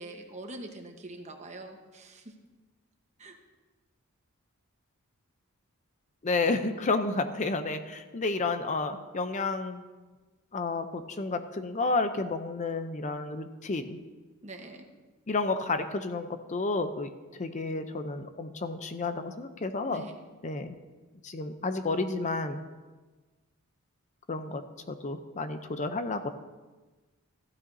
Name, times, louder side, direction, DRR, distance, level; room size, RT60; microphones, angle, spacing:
voice 1, 0.0-2.3 3.2-3.4 14.4-14.8 19.9-20.2, right 2 dB, 30° right, 4 dB, 1.1 m, -44 dB
voice 2, 6.2-9.8 10.5-14.0 15.3-20.0 20.4-20.7 21.2-22.6 24.3-26.3, left 3 dB, 35° left, 8 dB, 0.5 m, -31 dB
14.5 x 11.5 x 2.7 m, 1.2 s
head